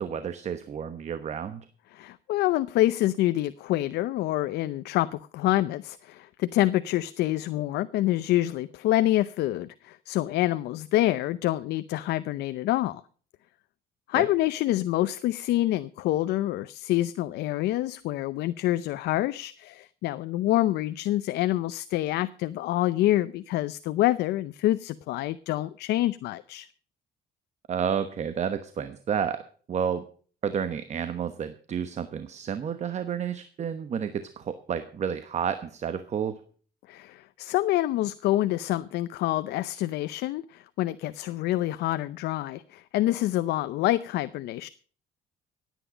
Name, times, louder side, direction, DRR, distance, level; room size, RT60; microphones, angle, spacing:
voice 1, 0.0-1.6 14.1-14.2 27.7-30.1 30.4-36.4, right 7 dB, 40° right, 1.1 m, -31 dB
voice 2, 1.9-13.0 14.1-26.7 36.9-44.7, left 15 dB, 80° left, 0.6 m, -27 dB
17.0 x 9.3 x 5.1 m
cardioid pair, 110°, 17 cm